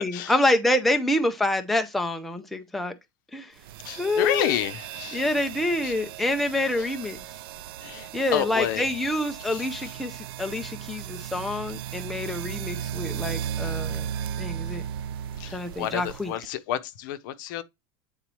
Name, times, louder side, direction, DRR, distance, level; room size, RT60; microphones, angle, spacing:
voice 1, 0.0-2.9 3.3-3.5 4.0-4.6 5.1-7.2 8.1-14.1 14.4-14.8 15.5-16.5, left 1 dB, ahead, 0.4 m, -27 dB
sound 1, 3.6-16.5, right 9 dB, 80° right, 0.4 m, -36 dB
voice 2, 3.8-5.2 5.8-5.9 7.8-8.9 9.5-9.6 15.4-17.6, left 11 dB, 60° left, 0.7 m, -29 dB
8.8 x 3.9 x 3.1 m
supercardioid pair, 170°, 12 cm